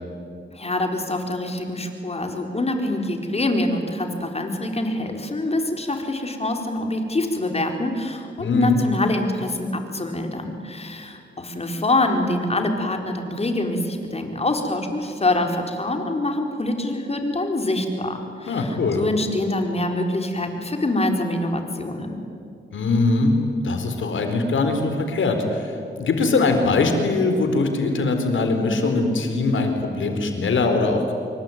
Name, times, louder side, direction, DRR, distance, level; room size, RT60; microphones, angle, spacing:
voice 1, 0.5-22.2, left 2 dB, 30° left, 4 dB, 4.2 m, -25 dB
voice 2, 8.4-8.8 18.5-19.0 22.7-23.3 23.6-31.1, left 3 dB, 75° left, 5 dB, 4.3 m, -21 dB
26.5 x 23.5 x 9.3 m, 2.4 s
cardioid pair, 80°, 20 cm